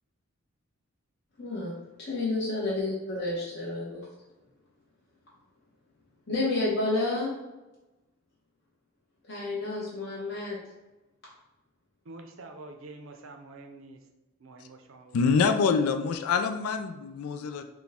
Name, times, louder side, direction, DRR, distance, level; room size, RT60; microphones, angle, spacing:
voice 1, 1.4-1.7 2.0-4.0 6.3-7.4 9.3-10.6, left 2 dB, 50° left, -7 dB, 1.0 m, -30 dB
voice 2, 12.0-14.1 14.4-15.7 16.2-16.6, right 2 dB, 70° right, 5 dB, 0.6 m, -47 dB
voice 3, 15.1-17.6, left 5 dB, 90° left, 6 dB, 0.4 m, -25 dB
6.0 x 2.2 x 3.5 m, 1.0 s
head